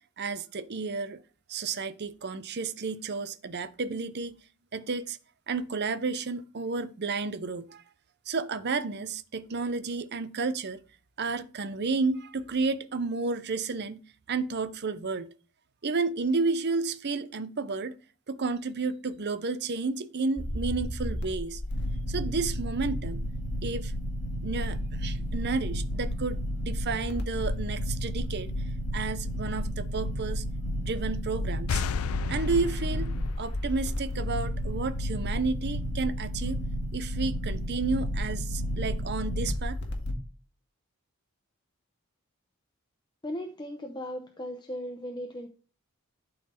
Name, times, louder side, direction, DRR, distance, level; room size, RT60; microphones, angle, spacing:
voice 1, 0.2-1.2 1.5-4.4 4.7-5.2 5.5-7.8 8.3-10.8 11.2-14.0 14.3-15.3 15.8-17.9 18.3-21.6 22.1-23.2 23.6-23.9 24.4-28.5 28.9-30.4 30.8-31.8 32.3-36.6 36.9-39.8, right 4 dB, 50° right, 0.7 m, -31 dB
sound 1, 20.4-40.1, equal, 50° left, 1.9 m, -32 dB
sound 2, 31.7-35.2, left 8 dB, 70° left, 0.3 m, -35 dB
voice 2, 43.2-45.5, equal, 20° left, 0.7 m, -37 dB
11.5 x 4.0 x 4.4 m
head